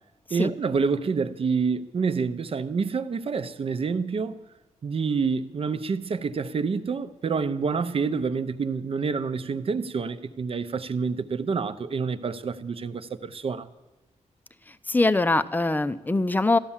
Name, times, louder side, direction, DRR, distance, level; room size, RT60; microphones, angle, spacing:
voice 1, 0.3-4.4 4.8-13.7, right 5 dB, 50° right, 0.7 m, -27 dB
voice 2, 14.9-16.6, left 2 dB, 15° left, 0.5 m, -22 dB
14.0 x 11.0 x 7.3 m
wide cardioid pair, 140°, 13 cm